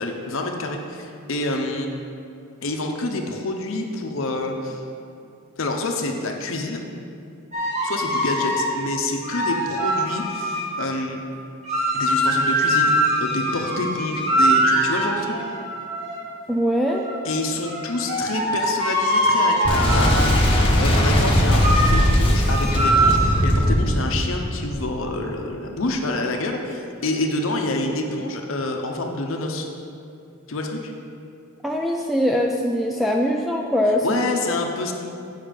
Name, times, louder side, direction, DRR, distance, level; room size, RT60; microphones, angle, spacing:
voice 1, 0.0-1.9 2.6-4.9 5.6-6.8 7.8-11.2 11.9-12.9 13.2-15.3 17.2-29.7 30.5-30.9 33.9-34.9, left 2 dB, 65° left, 3 dB, 0.8 m, -27 dB
sound 1, 7.5-8.7 9.2-10.8 11.6-16.2 16.8-20.4 21.6-22.1 22.5-23.4, right 1 dB, 35° right, 2.1 m, -22 dB
voice 2, 16.5-17.1 31.6-34.3, equal, ahead, 0 dB, 0.3 m, -22 dB
Boom, 19.6-25.2, equal, 25° left, 1.1 m, -19 dB
9.0 x 5.6 x 5.1 m, 2.6 s
head